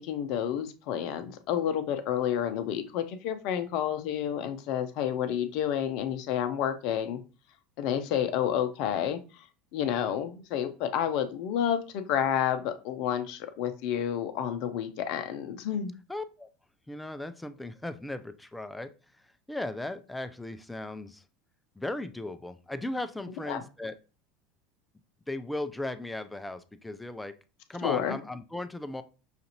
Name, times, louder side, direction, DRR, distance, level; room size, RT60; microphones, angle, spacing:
voice 1, 0.0-7.2 7.8-9.2 9.7-15.9 23.5-23.6 27.8-28.2, left 9 dB, 60° left, 9 dB, 0.6 m, -30 dB
voice 2, 16.1-16.5 16.9-18.9 19.5-21.2 21.8-24.0 25.3-27.4 27.7-29.0, left 2 dB, 10° left, 11 dB, 0.4 m, -37 dB
5.8 x 2.5 x 2.8 m, 0.34 s
hypercardioid pair, 80°, 0 cm